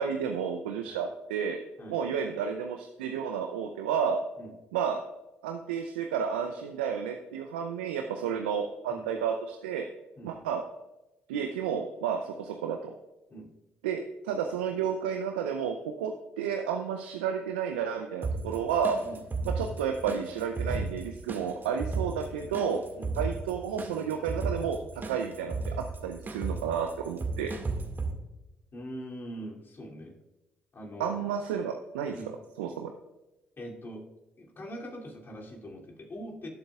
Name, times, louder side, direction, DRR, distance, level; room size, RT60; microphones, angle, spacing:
voice 1, 0.0-1.6 1.9-4.2 4.7-5.0 5.4-9.8 10.2-10.6 11.3-12.9 13.8-19.0 19.6-22.8 23.2-25.7 26.0-27.5 31.0-32.1 32.6-32.9, right 7 dB, 85° right, 5 dB, 0.6 m, -31 dB
sound 1, 18.2-28.1, right 3 dB, 35° right, 2.0 m, -35 dB
voice 2, 28.7-30.1 30.7-31.2 32.1-32.3 33.6-34.0 34.4-36.5, equal, 40° left, -2 dB, 2.8 m, -42 dB
17.5 x 7.8 x 2.4 m, 1.0 s
hypercardioid pair, 45°, 6 cm